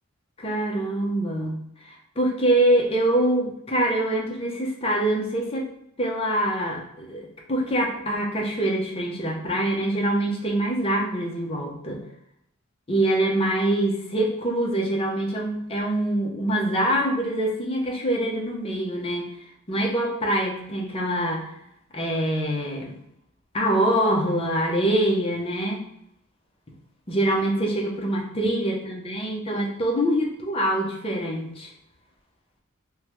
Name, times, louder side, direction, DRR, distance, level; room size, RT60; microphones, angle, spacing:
voice 1, 0.4-5.7 6.0-12.0 12.9-19.3 19.7-21.5 21.9-22.9 23.5-25.8 27.1-31.7, right 1 dB, 25° left, -1 dB, 0.6 m, -24 dB
3.5 x 2.1 x 3.0 m, 0.76 s
head